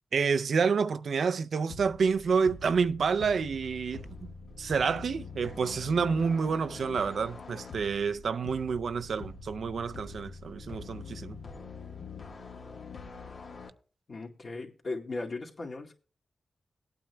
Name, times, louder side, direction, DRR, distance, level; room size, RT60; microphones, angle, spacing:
voice 1, 0.1-4.3 4.6-11.4, right 5 dB, 80° right, 0.4 m, -28 dB
sound 1, 1.7-13.7, left 4 dB, 75° left, 1.5 m, -45 dB
voice 2, 14.1-15.9, left 3 dB, 60° left, 2.1 m, -37 dB
21.5 x 8.9 x 2.2 m
cardioid pair, 55°, 0 cm